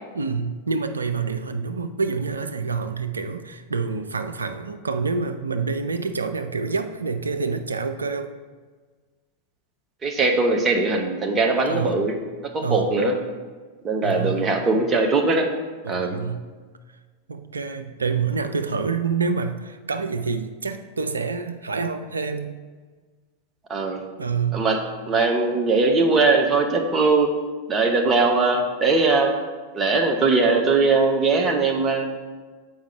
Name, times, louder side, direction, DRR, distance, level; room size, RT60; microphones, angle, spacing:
voice 1, 0.1-8.3 11.7-12.0 12.6-13.0 14.0-14.6 15.8-16.5 17.3-22.6 24.2-24.7, right 5 dB, 75° right, 8 dB, 0.4 m, -27 dB
voice 2, 10.0-12.2 12.4-13.2 13.8-15.5 15.9-16.2 23.7-24.0 24.5-27.3 27.7-29.4 29.7-32.1, right 3 dB, 20° right, 3 dB, 0.8 m, -20 dB
7.2 x 4.9 x 3.3 m, 1.4 s
figure-of-eight pair, 90°, 0 cm